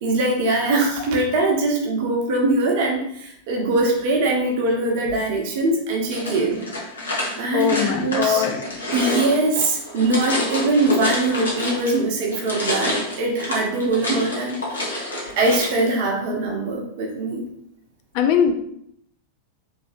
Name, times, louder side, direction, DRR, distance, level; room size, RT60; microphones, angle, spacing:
voice 1, 0.0-6.6 7.4-8.4 8.9-14.8 15.2-17.4, right 2 dB, 50° right, 0 dB, 0.7 m, -22 dB
sound 1, 6.1-12.0 12.3-15.8, left 1 dB, 70° left, 0.8 m, -28 dB
voice 2, 7.5-8.6 18.1-18.5, left 8 dB, 45° left, 5 dB, 0.4 m, -20 dB
3.3 x 2.6 x 2.6 m, 0.73 s
figure-of-eight pair, 90°, 0 cm